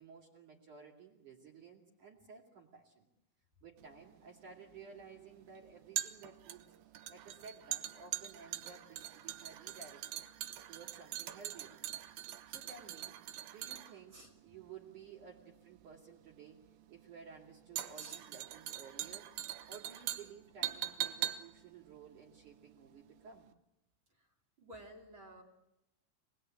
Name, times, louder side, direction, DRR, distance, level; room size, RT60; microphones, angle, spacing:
voice 1, 0.0-3.1 3.6-6.7 7.1-10.2 10.7-11.8 12.5-13.2 13.5-14.2 14.4-16.6 16.9-19.3 19.7-23.5, right 5 dB, 45° right, -2 dB, 3.5 m, -54 dB
sound 1, 3.8-23.1 23.3-23.5, right 12 dB, 70° right, 2.5 m, -43 dB
voice 2, 24.6-25.4, right 1 dB, 30° right, 2 dB, 3.0 m, -53 dB
28.0 x 20.0 x 9.0 m, 0.91 s
omnidirectional pair, 5.4 m